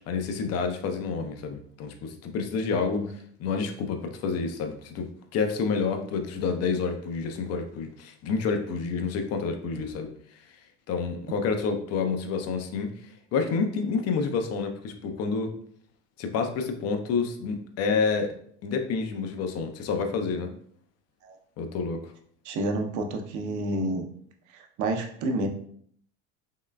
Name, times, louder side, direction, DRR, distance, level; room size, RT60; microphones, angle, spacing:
voice 1, 0.1-3.1 3.4-5.1 5.3-10.1 10.5-10.6 10.9-15.6 16.2-18.4 18.6-20.5 21.6-22.1, left 5 dB, 45° left, 6 dB, 0.6 m, -29 dB
voice 2, 22.4-24.0 24.5-25.5, right 2 dB, 55° right, 4 dB, 0.7 m, -29 dB
3.7 x 3.0 x 2.2 m, 0.62 s
hypercardioid pair, 85°, 36 cm